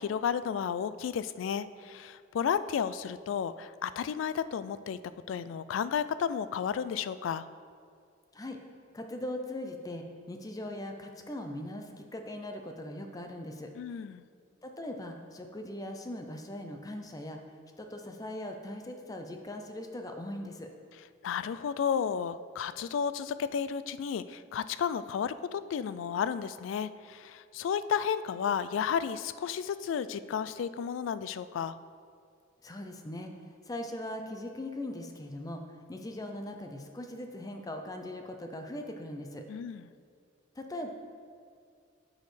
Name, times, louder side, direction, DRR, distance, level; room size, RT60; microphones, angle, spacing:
voice 1, 0.0-5.0 5.3-7.4 13.8-14.2 21.2-31.8 39.5-39.9, left 7 dB, 80° left, 15 dB, 0.3 m, -32 dB
voice 2, 8.9-13.7 14.6-17.4 17.8-20.7 32.6-33.3 33.7-39.4 40.6-40.9, left 1 dB, 20° left, 4 dB, 0.5 m, -40 dB
9.3 x 6.3 x 3.3 m, 2.3 s
head